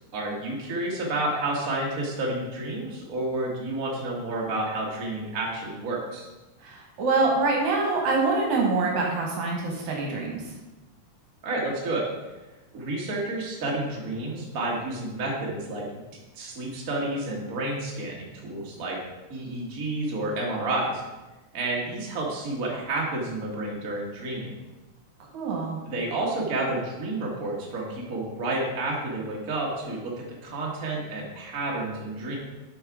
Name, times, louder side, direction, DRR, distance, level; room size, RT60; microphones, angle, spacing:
voice 1, 0.1-6.3 11.4-12.1 12.7-15.9 16.3-19.0 19.3-21.0 21.5-24.5 25.9-32.4, right 2 dB, 40° right, -3 dB, 1.3 m, -30 dB
voice 2, 6.6-10.5 25.3-25.8, right 3 dB, 65° right, 0 dB, 2.3 m, -25 dB
7.6 x 5.7 x 4.8 m, 1.1 s
omnidirectional pair, 4.0 m